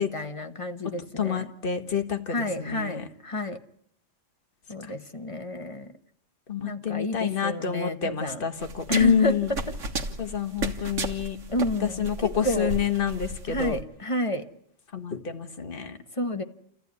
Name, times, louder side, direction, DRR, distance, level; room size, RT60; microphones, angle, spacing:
voice 1, 0.0-1.5 2.3-3.6 4.7-5.9 6.6-8.5 8.9-9.6 11.5-12.7 13.5-14.5 16.1-16.4, left 1 dB, 25° left, 6 dB, 1.4 m, -30 dB
voice 2, 1.2-3.0 6.5-9.5 10.2-11.4 11.8-13.8 14.9-16.0, left 7 dB, 40° left, 6 dB, 1.8 m, -27 dB
sound 1, 8.6-13.8, right 2 dB, 65° right, 2.0 m, -34 dB
29.0 x 14.5 x 9.7 m, 0.72 s
omnidirectional pair, 1.4 m